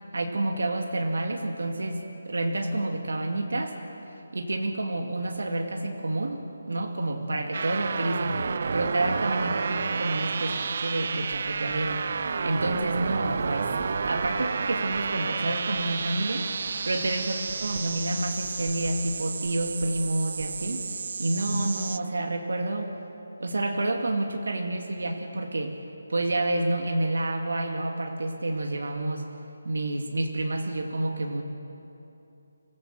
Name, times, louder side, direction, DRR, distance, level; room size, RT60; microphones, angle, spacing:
voice 1, 0.1-3.8 4.3-6.4 6.7-8.4 8.7-12.1 12.4-13.7 14.1-16.5 16.8-22.9 23.4-25.8 26.1-29.3 29.6-31.4, right 2 dB, 90° right, 3 dB, 2.3 m, -29 dB
sound 1, 7.5-22.0, right 5 dB, 40° right, 0.5 m, -31 dB
Writing, 11.3-16.2 16.5-21.1, right 1 dB, 10° right, 2.1 m, -46 dB
24.5 x 16.0 x 7.7 m, 2.9 s
hypercardioid pair, 175°, 0 cm